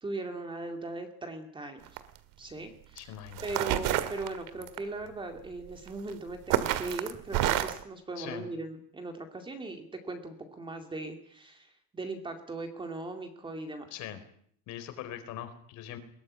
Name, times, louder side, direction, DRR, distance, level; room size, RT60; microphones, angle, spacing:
voice 1, 0.0-1.9 2.4-3.1 3.4-13.9, right 2 dB, 15° right, 5 dB, 2.3 m, -39 dB
sound 1, 1.9-2.2 3.0-3.1 3.4-4.8 5.9-6.1 6.5-7.8, right 13 dB, 60° right, 2.0 m, -28 dB
voice 2, 3.0-3.5 8.2-8.5 13.9-14.2 14.7-16.0, left 11 dB, 50° left, 9 dB, 4.3 m, -41 dB
22.0 x 18.5 x 9.8 m, 0.63 s
cardioid pair, 175°, 36 cm